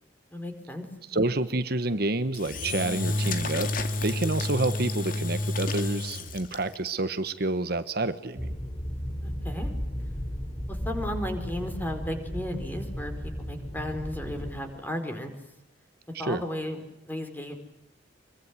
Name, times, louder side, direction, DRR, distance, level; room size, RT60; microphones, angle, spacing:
voice 1, 0.3-0.8 1.1-1.3 9.2-9.7 10.7-15.3 16.2-17.6, left 1 dB, 10° left, 6 dB, 4.5 m, -35 dB
voice 2, 1.1-3.7 4.0-8.5 16.2-16.4, right 2 dB, 55° right, 11 dB, 1.2 m, -28 dB
Engine / Drill, 2.3-6.9, left 2 dB, 45° left, 2.5 m, -30 dB
sound 1, 8.4-14.6, equal, 30° left, 3.4 m, -34 dB
25.5 x 23.0 x 9.6 m, 0.84 s
head